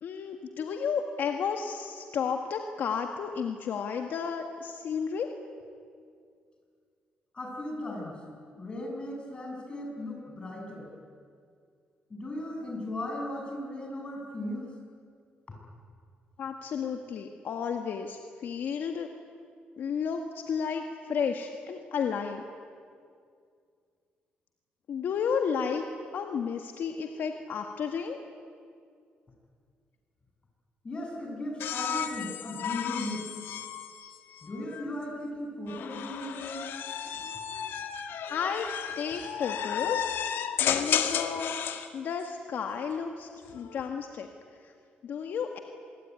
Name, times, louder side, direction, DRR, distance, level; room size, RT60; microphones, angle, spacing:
voice 1, 0.0-5.3 16.4-19.1 19.8-22.4 24.9-25.8 26.1-28.2 38.3-38.7 39.0-40.3 40.6-41.5 41.9-44.3 44.6-44.7 45.0-45.6, left 6 dB, 65° left, 4 dB, 1.8 m, -32 dB
voice 2, 7.3-8.2 8.6-10.9 12.1-14.7 30.8-33.3 34.4-36.7, left 1 dB, 25° left, 0 dB, 7.5 m, -37 dB
sound 1, 31.6-34.9 35.7-41.9 43.3-43.9, left 9 dB, 80° left, 1.9 m, -33 dB
25.0 x 23.0 x 9.7 m, 2.2 s
cardioid pair, 135°, 4 cm